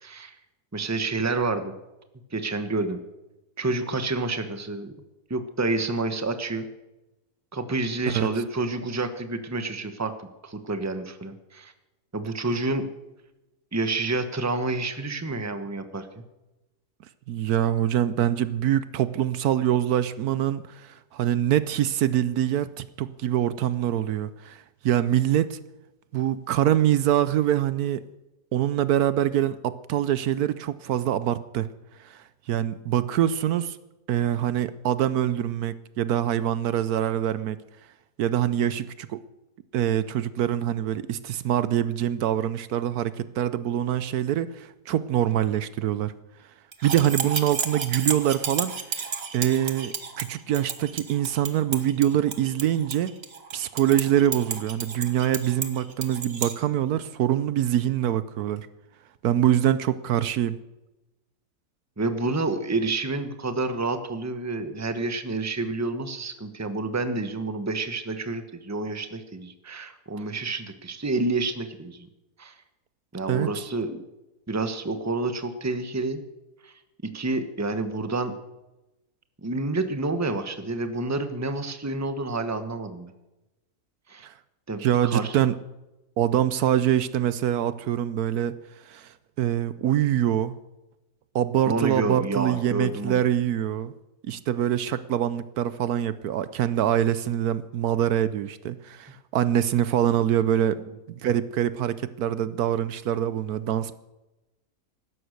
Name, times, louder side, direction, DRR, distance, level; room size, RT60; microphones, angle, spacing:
voice 1, 0.0-0.3 0.7-1.7 2.3-3.0 3.6-4.9 5.3-6.7 7.5-11.7 12.1-12.9 13.7-16.2 62.0-72.1 72.4-72.5 73.1-74.0 74.5-76.2 76.6-76.7 77.1-78.3 79.4-83.1 84.1-84.3 84.7-85.4 91.7-93.2, right 3 dB, 10° right, 9 dB, 1.0 m, -29 dB
voice 2, 17.3-25.6 26.1-28.0 28.5-31.7 32.0-33.8 34.1-37.6 38.2-39.2 39.7-46.1 46.8-53.1 53.5-58.7 59.2-60.6 73.3-73.7 84.2-84.3 84.8-85.6 86.2-88.5 88.9-90.6 91.3-93.9 94.2-100.8 101.1-103.9, right 11 dB, 75° right, 15 dB, 1.1 m, -24 dB
sound 1, 46.7-56.5, right 5 dB, 40° right, 1.5 m, -32 dB
16.5 x 12.5 x 6.5 m, 1.0 s
omnidirectional pair, 1.7 m